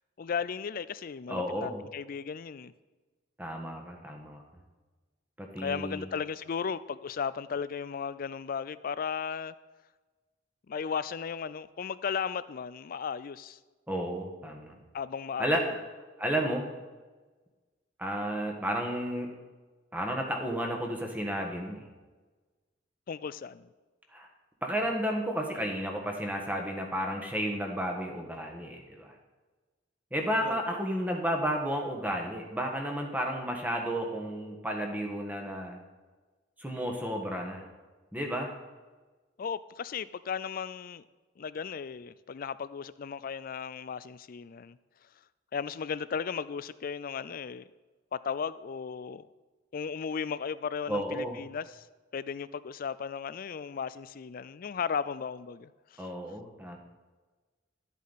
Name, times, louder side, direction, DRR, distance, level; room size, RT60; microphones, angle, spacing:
voice 1, 0.2-2.7 5.6-9.5 10.7-13.6 14.9-15.5 23.1-23.7 30.4-30.6 39.4-41.0 41.4-44.8 45.5-47.6 48.1-49.3 49.7-51.9 52.1-56.1, left 6 dB, 50° left, 16 dB, 0.4 m, -35 dB
voice 2, 1.3-1.8 3.4-4.4 5.4-6.1 13.9-14.7 15.4-15.6 16.2-16.7 18.0-19.3 19.9-21.8 24.1-24.3 24.6-29.1 30.1-35.8 36.6-37.6 38.1-38.5 50.9-51.4 56.0-56.8, equal, 10° right, 2 dB, 1.4 m, -32 dB
12.0 x 8.3 x 4.1 m, 1.3 s
head